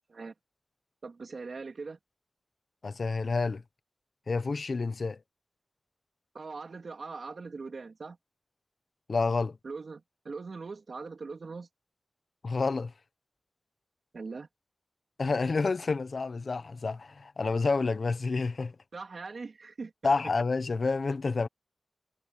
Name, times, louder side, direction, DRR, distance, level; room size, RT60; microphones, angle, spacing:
voice 1, 1.0-2.0 6.3-8.2 9.6-11.7 14.1-14.5 18.9-20.3, right 4 dB, 80° right, 3.4 m, -41 dB
voice 2, 2.8-3.6 4.3-5.2 9.1-9.6 12.4-12.9 15.2-18.7 20.0-21.5, left 4 dB, 75° left, 1.0 m, -29 dB
wide cardioid pair, 65°, 0 cm